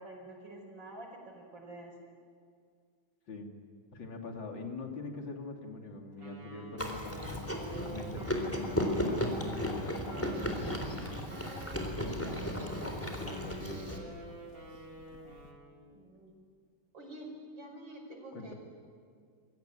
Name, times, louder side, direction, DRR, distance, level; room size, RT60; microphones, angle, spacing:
voice 1, 0.0-2.0 15.9-16.3 16.9-18.5, right 1 dB, 70° right, 1 dB, 6.1 m, -48 dB
voice 2, 3.9-7.6 7.9-11.3 11.9-14.2 18.3-18.5, left 2 dB, 70° left, 3 dB, 3.5 m, -43 dB
Wind instrument woodwind instrument, 6.2-15.8, right 2 dB, 45° right, 5.1 m, -49 dB
Chewing mastication, 6.8-14.0, equal, 5° left, 3.8 m, -35 dB
sound 1, 7.0-15.5, left 3 dB, 45° left, 2.5 m, -51 dB
27.5 x 22.0 x 9.3 m, 2.2 s
omnidirectional pair, 2.1 m